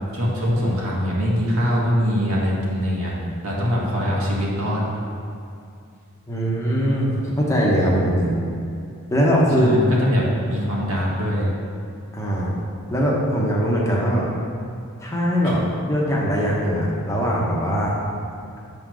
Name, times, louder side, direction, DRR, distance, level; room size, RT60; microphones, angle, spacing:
voice 1, 0.1-3.1 3.4-4.8 9.6-11.5 15.4-15.7, equal, 75° right, -5 dB, 1.7 m, -22 dB
voice 2, 6.3-8.3 9.1-9.7 12.1-12.5 12.9-14.3 15.0-18.0, equal, 15° left, -5 dB, 1.0 m, -21 dB
7.7 x 3.9 x 6.1 m, 2.5 s
head